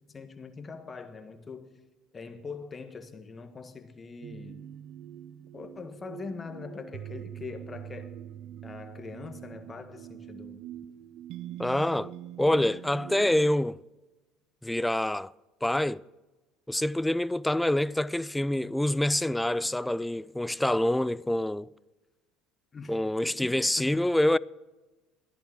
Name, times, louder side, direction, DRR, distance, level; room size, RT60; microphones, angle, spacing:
voice 1, 0.1-1.7 2.1-4.6 5.5-8.1 8.6-10.6 22.7-24.2, left 4 dB, 30° left, 1.6 m, -43 dB
sound 1, 4.2-13.5, right 11 dB, 60° right, 0.5 m, -44 dB
voice 2, 11.6-12.1 12.4-13.8 14.6-15.3 15.6-16.0 16.7-21.7 22.9-24.4, left 1 dB, 5° left, 0.3 m, -26 dB
14.0 x 10.5 x 6.4 m
hypercardioid pair, 80°, 0 cm